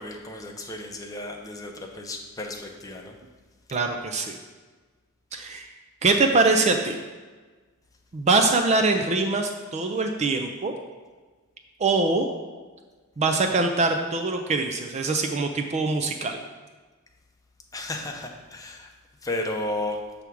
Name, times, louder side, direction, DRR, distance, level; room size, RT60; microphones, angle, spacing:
voice 1, 0.0-3.1 17.7-18.9 19.2-20.0, left 2 dB, 15° left, 2 dB, 0.7 m, -33 dB
voice 2, 3.7-4.4 5.3-5.7 6.0-7.0 8.1-10.7 11.8-12.3 13.2-16.4, right 3 dB, 30° right, 5 dB, 0.4 m, -23 dB
7.1 x 3.5 x 6.1 m, 1.4 s
head